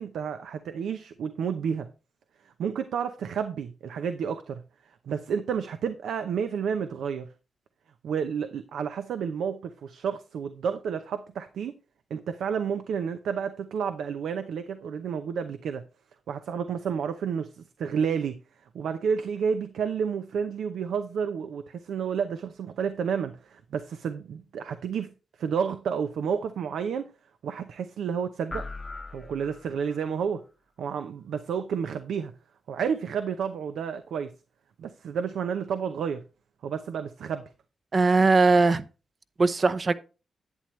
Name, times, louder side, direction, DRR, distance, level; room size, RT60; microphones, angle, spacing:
voice 1, 0.0-1.9 2.4-4.6 5.0-7.3 8.0-11.7 12.1-15.8 16.3-18.4 18.7-27.1 27.4-28.7 29.1-30.4 30.8-32.3 32.7-34.3 34.8-36.2 36.6-37.5, right 7 dB, 85° right, 0.6 m, -30 dB
sound 1, 28.5-30.1, left 3 dB, 30° left, 0.8 m, -39 dB
voice 2, 37.9-38.9 39.4-39.9, right 3 dB, 45° right, 0.8 m, -20 dB
11.0 x 8.8 x 3.1 m
cardioid pair, 65°, 0 cm